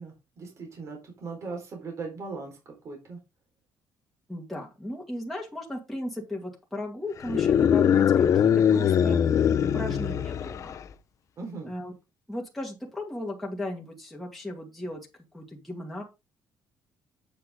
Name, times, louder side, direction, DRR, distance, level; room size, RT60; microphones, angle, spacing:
voice 1, 0.0-3.2 11.4-11.7, right 4 dB, 40° right, 1 dB, 4.4 m, -39 dB
voice 2, 4.3-9.2 9.7-10.8 11.7-11.9 12.3-15.1 15.3-16.0, left 1 dB, ahead, -3 dB, 2.3 m, -36 dB
sound 1, 7.2-10.9, left 8 dB, 45° left, 0.7 m, -22 dB
8.5 x 7.6 x 3.7 m, 0.25 s
cardioid pair, 160°, 8 cm